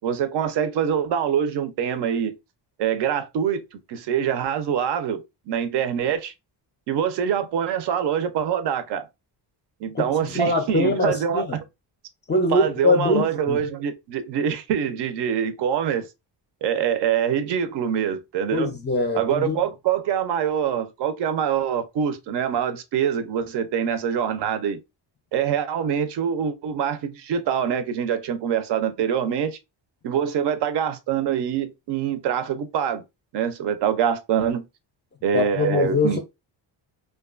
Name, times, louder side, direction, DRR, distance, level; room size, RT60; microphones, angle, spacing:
voice 1, 0.0-2.3 2.8-5.2 5.5-6.3 6.9-9.1 9.8-11.5 12.5-16.1 16.6-18.7 19.1-24.8 25.3-29.6 30.0-33.0 33.3-34.6 35.2-36.2, right 8 dB, 65° right, 0.5 m, -24 dB
voice 2, 9.9-11.6 12.3-13.7 18.5-19.6 35.3-36.2, left 2 dB, 25° left, 0.4 m, -23 dB
2.5 x 2.3 x 2.3 m
cardioid pair, 160°, 45 cm